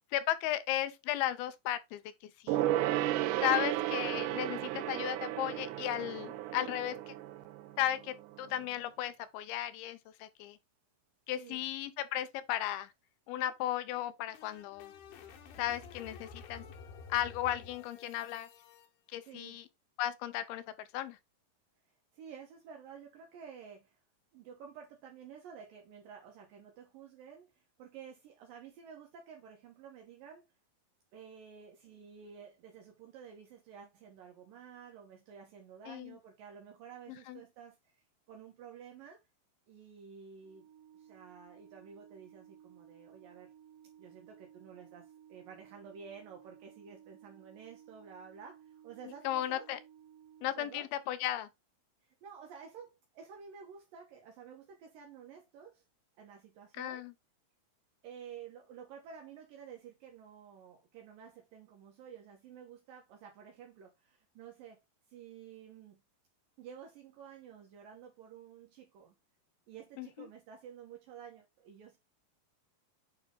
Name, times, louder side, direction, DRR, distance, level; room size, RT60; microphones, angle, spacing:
voice 1, 0.1-2.0 2.4-2.7 3.4-7.1 7.8-10.6 11.3-12.9 13.3-14.9 15.6-16.6 17.1-18.5 19.1-19.7 20.0-20.6 20.9-21.2 35.9-36.2 37.3-37.4 49.2-49.8 50.4-51.5 56.8-57.1 70.0-70.3, left 13 dB, 90° left, 2.7 m, -35 dB
Gong, 2.5-8.4 8.6-8.7, right 14 dB, 90° right, 1.8 m, -34 dB
sound 1, 13.9-18.9, left 5 dB, 70° left, 2.2 m, -51 dB
voice 2, 19.2-19.6 22.1-24.0 24.3-30.5 31.1-38.0 38.3-39.2 39.7-40.7 41.0-43.5 44.0-49.7 50.6-50.9 52.2-55.8 56.2-57.1 58.0-64.8 65.1-66.0 66.6-69.1 69.7-72.0, right 7 dB, 70° right, 2.8 m, -51 dB
Organ, 40.4-51.2, right 9 dB, 45° right, 3.5 m, -58 dB
8.9 x 3.5 x 3.8 m
omnidirectional pair, 4.3 m